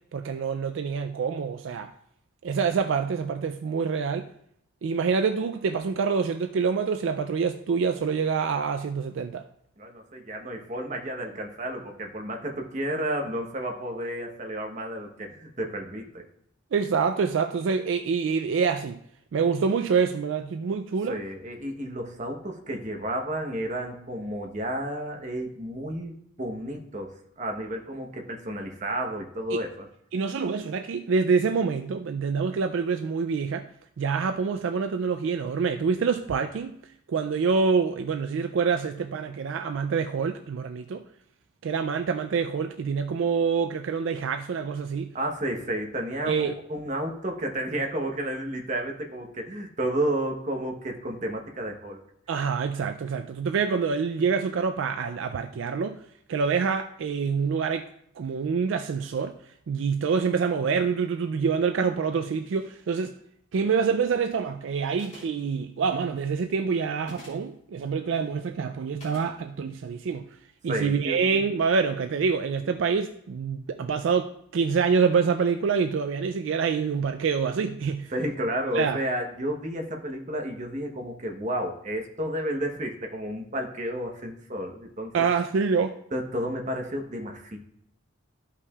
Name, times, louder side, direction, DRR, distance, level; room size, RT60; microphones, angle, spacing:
voice 1, 0.1-1.9 2.4-4.3 4.8-9.4 16.7-19.0 19.3-21.2 29.5-29.6 30.1-33.7 34.0-36.8 37.1-41.0 41.6-45.1 46.3-46.5 52.3-56.0 56.3-57.9 58.2-59.3 59.7-63.1 63.5-70.3 70.6-78.1 78.7-79.0 85.1-86.0, right 5 dB, 70° right, 0.3 m, -26 dB
voice 2, 9.8-16.2 21.1-29.9 45.1-52.0 70.7-71.2 78.1-85.1 86.1-87.6, right 1 dB, 35° right, 0.9 m, -31 dB
sound 1, 65.0-65.5 67.0-67.5 69.0-69.3, left 1 dB, 35° left, 3.1 m, -46 dB
14.0 x 5.7 x 2.3 m
head